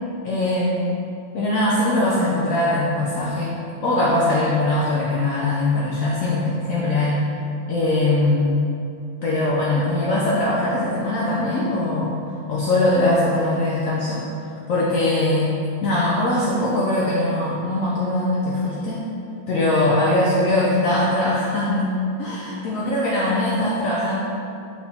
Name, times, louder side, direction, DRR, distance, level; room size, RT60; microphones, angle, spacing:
voice 1, 0.2-1.0 1.3-3.5 3.8-7.2 7.7-8.5 9.2-12.1 12.5-14.3 14.7-15.5 15.8-19.1 19.5-24.2, left 1 dB, 80° left, -6 dB, 0.7 m, -21 dB
4.8 x 3.4 x 2.7 m, 2.6 s
omnidirectional pair, 2.0 m